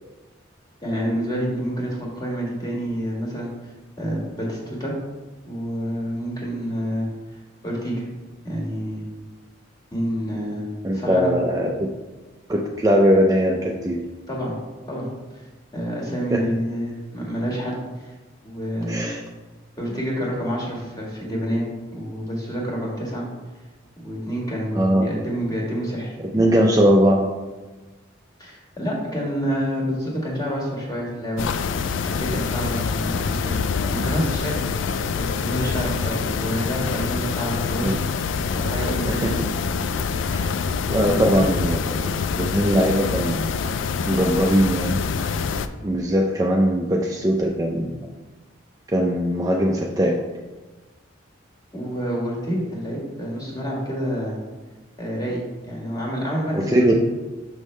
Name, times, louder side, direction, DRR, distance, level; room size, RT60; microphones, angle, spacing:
voice 1, 0.8-3.5 4.0-4.9 5.4-7.1 7.6-8.0 8.4-9.0 9.9-10.6 10.9-11.3 14.3-14.5 14.9-15.1 15.7-18.1 18.4-19.1 19.8-21.6 21.9-23.2 24.0-26.7 28.4-31.5 32.1-33.5 33.9-34.9 35.2-39.4 41.0-41.5 51.7-54.4 55.0-55.4 55.7-57.0, equal, 20° left, -4 dB, 1.5 m, -28 dB
voice 2, 10.8-11.9 12.5-14.0 16.3-16.5 18.9-19.2 24.7-25.1 26.3-27.3 37.8-38.0 39.1-39.3 40.3-40.5 40.9-43.4 44.1-45.0 45.8-47.9 48.9-50.1 56.5-57.0, equal, 15° right, -1 dB, 0.4 m, -20 dB
sound 1, 31.4-45.7, left 5 dB, 70° left, 0.3 m, -25 dB
6.2 x 5.3 x 3.2 m, 1.2 s
head